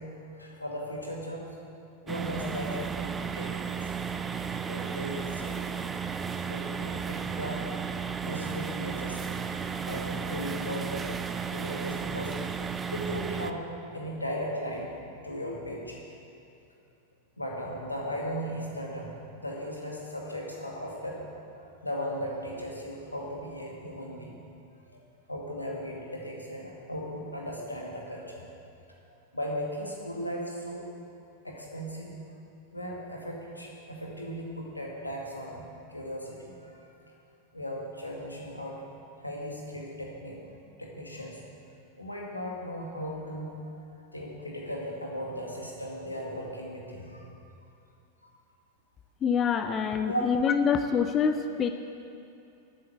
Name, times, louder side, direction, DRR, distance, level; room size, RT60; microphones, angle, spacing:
voice 1, 0.0-1.4 2.0-3.9 4.7-5.6 6.5-7.6 8.2-9.5 9.9-11.2 11.5-12.3 12.9-13.6 13.9-14.9 15.2-16.0 17.4-21.2 21.5-24.4 24.9-25.0 25.3-28.4 29.1-30.9 31.4-32.3 32.7-36.9 37.5-38.8 39.2-40.4 40.8-41.4 42.0-47.3 48.2-48.3 50.0-50.3, equal, 85° left, -2 dB, 2.2 m, -37 dB
sound 1, 2.1-13.5, right 6 dB, 15° right, 0.6 m, -34 dB
voice 2, 49.2-51.7, left 6 dB, 25° left, 8 dB, 0.6 m, -26 dB
12.5 x 8.6 x 7.6 m, 2.6 s
figure-of-eight pair, 90°, 0 cm